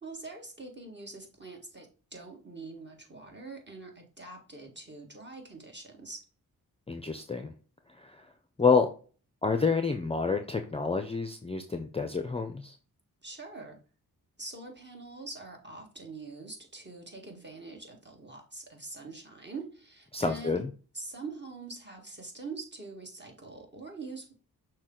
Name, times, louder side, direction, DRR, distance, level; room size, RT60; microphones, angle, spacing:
voice 1, 0.0-6.2 13.2-13.8 14.4-20.6 20.9-24.4, right 3 dB, 25° right, 1 dB, 1.7 m, -44 dB
voice 2, 6.9-7.5 8.0-8.2 8.6-8.9 9.4-12.7 20.1-20.7, left 4 dB, 15° left, 6 dB, 0.5 m, -28 dB
6.1 x 2.2 x 3.8 m, 0.38 s
cardioid pair, 40°, 39 cm